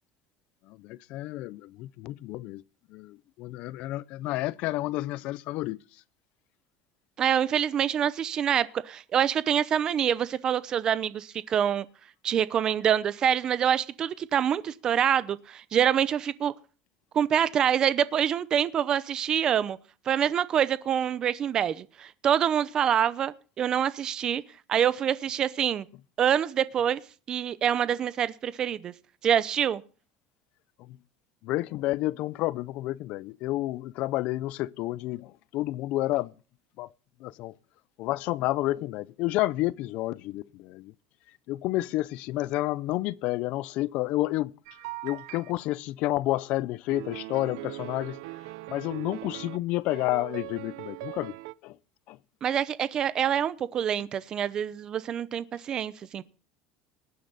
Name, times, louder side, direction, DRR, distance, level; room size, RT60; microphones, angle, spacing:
voice 1, 0.7-2.6 2.9-5.8 30.8-31.0 31.4-36.3 36.8-36.9 37.2-37.5 38.0-40.9 41.5-44.5 45.0-48.2 48.7-51.4 51.6-51.8 52.1-52.2, left 17 dB, 50° left, 0.5 m, -30 dB
voice 2, 7.2-11.9 12.2-16.5 17.1-19.8 20.1-24.4 24.7-25.9 26.2-27.0 27.3-28.9 29.2-29.8 52.4-56.2, right 9 dB, 25° right, 0.7 m, -26 dB
sound 1, 44.7-45.5 46.9-49.6 49.9-51.5, right 21 dB, 85° right, 0.7 m, -40 dB
19.0 x 10.0 x 4.0 m
cardioid pair, 180°, 3 cm